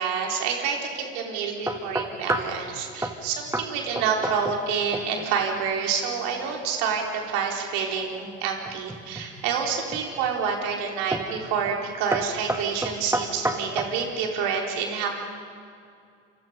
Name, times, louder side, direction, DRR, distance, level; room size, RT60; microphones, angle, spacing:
voice 1, 0.0-15.1, right 6 dB, 65° right, 0 dB, 4.5 m, -28 dB
sound 1, 1.7-2.6 3.0-3.2 3.5-3.7 4.0-4.7 4.9-5.3 8.7-9.3 9.9-10.3 11.1-11.4 11.6-11.8 12.1-14.0, right 1 dB, 5° right, 2.0 m, -29 dB
28.5 x 27.5 x 5.4 m, 2.3 s
hypercardioid pair, 65°, 37 cm